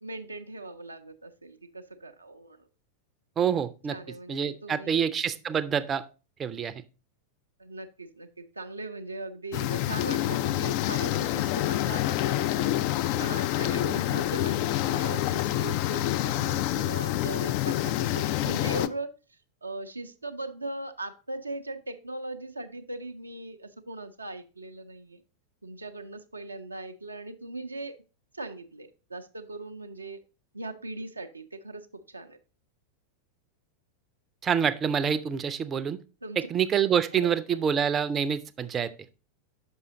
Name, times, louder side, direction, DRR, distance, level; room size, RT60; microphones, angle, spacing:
voice 1, 0.0-2.7 3.9-5.1 7.6-25.2 25.6-27.9 28.3-30.2 30.5-32.4 36.2-36.4 37.1-37.7, right 2 dB, 80° right, 6 dB, 0.5 m, -39 dB
voice 2, 3.4-3.9 4.3-6.0 6.4-6.7 34.4-36.0 36.5-38.9, right 7 dB, 25° right, 13 dB, 0.5 m, -26 dB
sound 1, 9.5-18.9, left 14 dB, 45° left, 0.3 m, -27 dB
6.2 x 5.4 x 3.9 m, 0.33 s
figure-of-eight pair, 90°, 0 cm